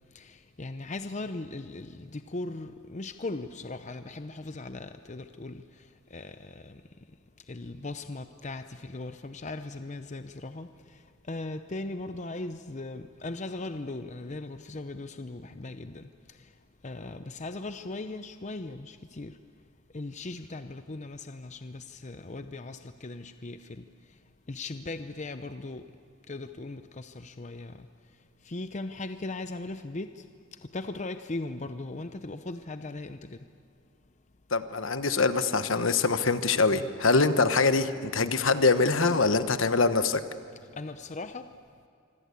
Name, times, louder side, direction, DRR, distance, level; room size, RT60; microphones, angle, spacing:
voice 1, 0.6-5.6 6.1-6.4 6.6-6.7 7.5-10.7 11.3-16.0 16.8-19.3 19.9-23.8 24.5-25.8 26.3-27.7 28.5-30.1 30.7-33.2 40.8-41.4, left 2 dB, 35° left, 9 dB, 0.7 m, -38 dB
voice 2, 34.5-40.2, left 4 dB, 70° left, 11 dB, 1.3 m, -24 dB
26.0 x 25.0 x 8.5 m, 2.4 s
head